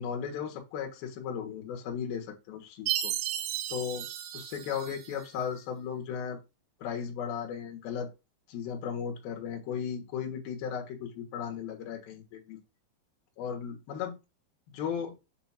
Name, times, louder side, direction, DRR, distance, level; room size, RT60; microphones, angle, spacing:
voice 1, 0.0-3.1 3.7-4.1 4.3-6.4 6.8-8.1 8.5-12.6 13.4-14.2 14.7-15.2, left 7 dB, 65° left, 2.9 m, -36 dB
Chime, 2.9-5.3, right 12 dB, 80° right, 2.9 m, -34 dB
7.2 x 2.8 x 5.7 m
omnidirectional pair, 5.3 m